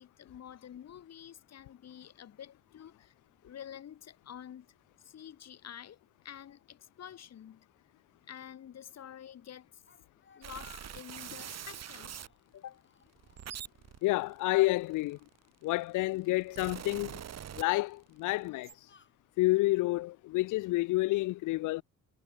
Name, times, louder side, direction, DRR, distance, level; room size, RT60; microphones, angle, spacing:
voice 1, 0.0-3.1 3.4-6.0 6.2-7.7 8.3-9.8 10.4-12.2 12.5-12.8, left 9 dB, 60° left, 2.1 m, -49 dB
Speech, 9.9-11.5 11.9-12.4 12.8-13.9 14.2-14.3 15.2-16.2 16.9-17.3 17.9-19.6, left 6 dB, 40° left, 4.7 m, -62 dB
sound 1, 10.4-12.3 13.1-15.4 16.1-18.1 18.4-18.7, right 9 dB, 60° right, 2.8 m, -44 dB
voice 2, 14.0-15.2 15.6-17.2 17.5-18.7 19.4-21.8, left 19 dB, 90° left, 0.6 m, -29 dB
cardioid pair, 90°, 30 cm